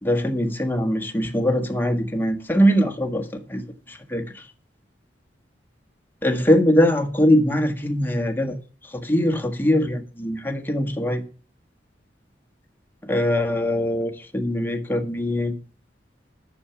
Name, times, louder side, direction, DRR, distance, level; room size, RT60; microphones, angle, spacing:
voice 1, 0.0-4.2 6.2-8.5 8.9-11.2 13.1-15.5, equal, 10° left, 1.6 m, -22 dB
11.0 x 7.3 x 7.1 m
head